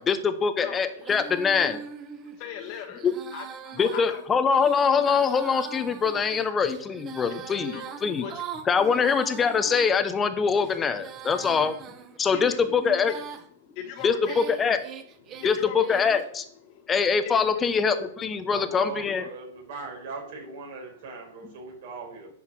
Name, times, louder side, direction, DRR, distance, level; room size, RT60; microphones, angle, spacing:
voice 1, 0.0-1.8 3.0-3.1 3.8-8.3 8.7-11.7 12.2-13.2 14.0-14.8 15.4-16.4 16.9-19.3, left 6 dB, 15° left, 10 dB, 1.0 m, -24 dB
Female singing, 1.0-9.9 10.5-13.5 14.0-16.3, right 7 dB, 25° right, 1.0 m, -42 dB
voice 2, 2.2-3.1 3.3-4.2 6.4-6.5 7.7-7.8 8.2-8.4 8.9-9.0 11.4-11.6 12.3-12.6 13.6-14.4 15.3-15.8 16.7-16.9 17.2-17.4 18.7-18.8, left 8 dB, 45° left, 3 dB, 1.6 m, -39 dB
voice 3, 18.5-22.3, right 4 dB, 55° right, 1 dB, 4.6 m, -40 dB
9.8 x 5.8 x 6.3 m, 0.65 s
hypercardioid pair, 140°, 0 cm